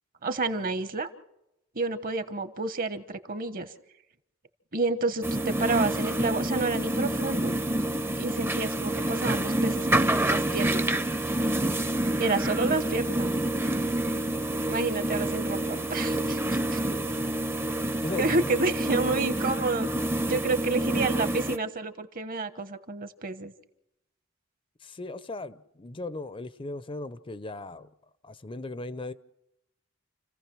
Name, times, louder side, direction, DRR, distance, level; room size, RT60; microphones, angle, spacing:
voice 1, 0.2-1.1 1.7-3.7 4.7-7.6 8.2-10.9 12.2-13.3 14.7-16.8 18.2-19.9 20.3-23.5, right 3 dB, 45° right, 11 dB, 1.2 m, -29 dB
sound 1, 5.2-21.6, right 1 dB, 10° right, 0.7 m, -28 dB
voice 2, 16.9-17.2 17.7-18.5 24.8-27.9 28.2-29.1, left 2 dB, 25° left, 14 dB, 0.7 m, -38 dB
29.0 x 15.5 x 6.2 m, 0.87 s
head